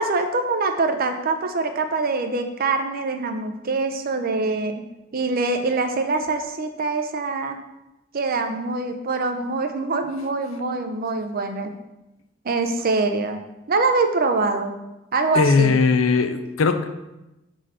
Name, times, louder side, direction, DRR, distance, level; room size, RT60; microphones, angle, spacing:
voice 1, 0.0-4.8 5.1-7.6 8.1-11.7 12.4-13.4 13.7-14.8 15.1-15.8, right 3 dB, 50° right, 6 dB, 0.6 m, -24 dB
voice 2, 15.3-16.9, left 4 dB, 85° left, 9 dB, 0.5 m, -19 dB
4.9 x 3.9 x 5.5 m, 0.97 s
head